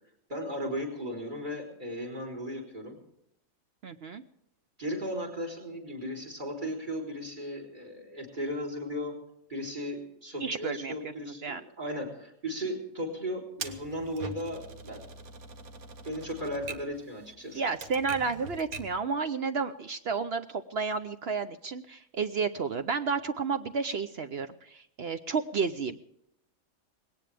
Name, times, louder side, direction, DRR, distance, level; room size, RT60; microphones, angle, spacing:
voice 1, 0.3-3.0 4.8-9.1 9.5-15.0 16.0-17.7, equal, 35° right, 3 dB, 4.1 m, -36 dB
voice 2, 3.8-4.2 10.4-11.6 17.5-26.0, right 5 dB, 55° right, 9 dB, 0.8 m, -31 dB
Typewriter, 13.6-19.0, right 4 dB, 85° right, 1.7 m, -43 dB
19.5 x 18.0 x 3.4 m, 0.77 s
omnidirectional pair, 1.5 m